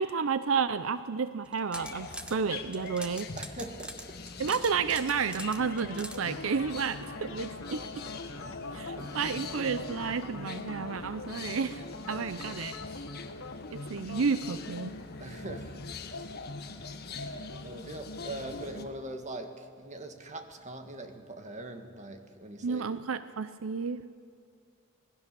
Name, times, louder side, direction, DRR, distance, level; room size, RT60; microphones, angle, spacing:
voice 1, 0.0-3.3 4.4-7.8 8.7-12.8 13.7-14.9 22.6-24.1, right 5 dB, 80° right, 13 dB, 0.6 m, -31 dB
sound 1, 1.4-2.4 2.7-6.2, right 1 dB, 5° right, 1.3 m, -43 dB
sound 2, 1.7-18.8, left 4 dB, 50° left, 1.5 m, -44 dB
voice 2, 3.4-4.2 8.0-9.3 12.1-12.8 15.2-15.9 17.1-22.9, right 1 dB, 35° right, 6 dB, 1.9 m, -43 dB
sound 3, 5.6-18.9, left 3 dB, 75° left, 1.5 m, -43 dB
26.0 x 19.0 x 6.9 m, 2.2 s
head